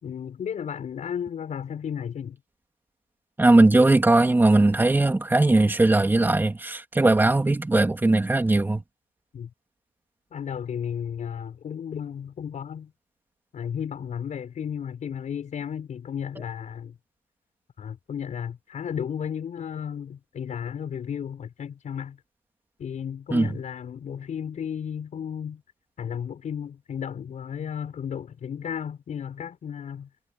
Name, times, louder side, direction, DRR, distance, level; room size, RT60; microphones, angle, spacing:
voice 1, 0.0-2.4 9.3-9.5 10.3-12.9 13.5-17.0 17.8-22.2 22.8-25.6 26.0-30.1, left 8 dB, 45° left, 5.7 m, -33 dB
voice 2, 3.4-8.8 23.3-23.5, right 2 dB, 10° right, 2.9 m, -19 dB
cardioid pair, 110°, 17 cm